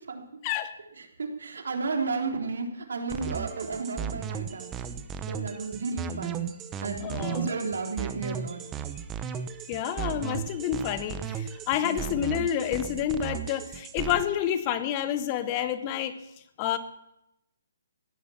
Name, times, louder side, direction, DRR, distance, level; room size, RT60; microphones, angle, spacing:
voice 1, 1.2-4.7 5.3-6.5 6.8-8.6 11.8-12.1, right 4 dB, 80° right, 3 dB, 3.8 m, -33 dB
sound 1, 3.1-14.2, right 8 dB, 15° right, 0.9 m, -35 dB
voice 2, 7.0-7.5 9.7-16.2 16.6-16.8, left 10 dB, 25° left, 12 dB, 1.1 m, -29 dB
16.5 x 11.0 x 7.3 m, 0.84 s
hypercardioid pair, 165°, 0 cm